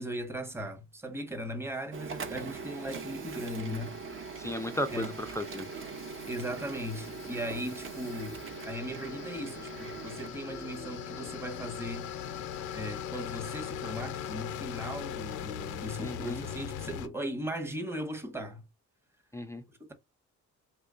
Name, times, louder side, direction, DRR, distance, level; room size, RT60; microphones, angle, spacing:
voice 1, 0.0-4.0 4.9-5.1 6.3-12.1 12.7-18.6 19.8-19.9, equal, 10° right, 0.8 m, -38 dB
Printer, 1.9-13.2, right 5 dB, 45° right, 0.7 m, -42 dB
sound 1, 2.4-17.1, left 9 dB, 90° left, 0.5 m, -41 dB
voice 2, 4.4-5.7 16.0-16.4 19.3-19.6, left 1 dB, 10° left, 0.3 m, -35 dB
3.0 x 2.2 x 3.6 m
cardioid pair, 90°, 30 cm